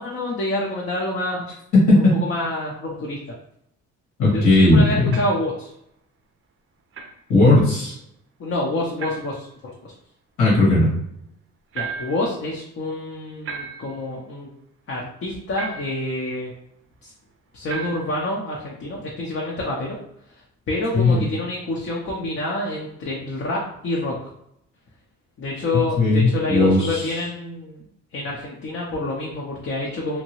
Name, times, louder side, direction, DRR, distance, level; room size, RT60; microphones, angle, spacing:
voice 1, 0.0-1.4 1.9-3.2 4.3-5.7 8.4-9.5 9.8-9.9 11.7-14.5 14.9-16.5 17.0-17.1 17.5-20.0 20.7-24.2 25.4-27.9 28.1-30.2, left 2 dB, 45° left, -3 dB, 0.6 m, -27 dB
voice 2, 1.7-2.1 4.2-5.2 7.3-7.9 10.4-10.9 20.9-21.2 26.0-27.2, left 2 dB, 85° left, -5 dB, 1.4 m, -16 dB
sound 1, 5.1-5.5 6.9-7.2 9.0-9.4 11.7-12.3 13.4-14.0 15.6-16.1 17.7-18.2, right 5 dB, 45° right, 0.4 m, -34 dB
2.8 x 2.2 x 3.0 m, 0.76 s
cardioid pair, 90°, 30 cm